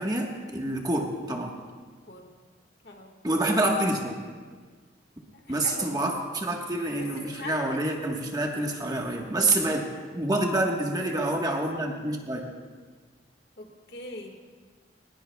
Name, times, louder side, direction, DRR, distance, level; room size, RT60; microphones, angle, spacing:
voice 1, 0.0-1.5 3.2-4.1 5.5-9.9 10.1-12.5, right 1 dB, 20° right, 1 dB, 1.3 m, -27 dB
voice 2, 5.3-6.1 7.0-8.0 13.6-14.4, left 2 dB, 60° left, 2 dB, 1.7 m, -42 dB
20.0 x 19.5 x 2.3 m, 1.5 s
head